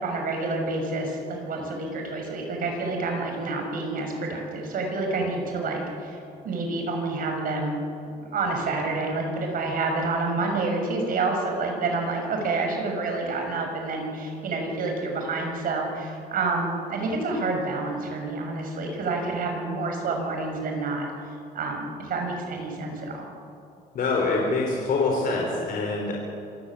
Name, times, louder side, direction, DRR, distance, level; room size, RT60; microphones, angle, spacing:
voice 1, 0.0-7.8 8.3-21.1 21.5-23.3, right 3 dB, 55° right, 2 dB, 6.5 m, -28 dB
voice 2, 23.9-26.1, left 3 dB, 55° left, -1 dB, 4.4 m, -25 dB
26.0 x 15.5 x 8.5 m, 2.7 s
cardioid pair, 110°, 17 cm